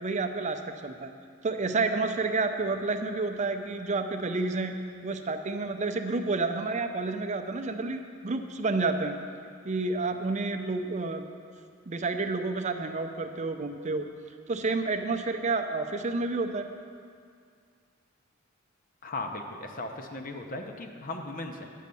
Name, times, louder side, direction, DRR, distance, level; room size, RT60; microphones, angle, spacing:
voice 1, 0.0-1.1 1.4-4.8 5.0-9.2 9.6-11.3 11.9-14.1 14.5-16.7, right 3 dB, 35° right, 7 dB, 0.5 m, -30 dB
voice 2, 19.0-21.7, left 2 dB, 40° left, 4 dB, 0.8 m, -37 dB
9.2 x 6.4 x 6.9 m, 2.2 s
head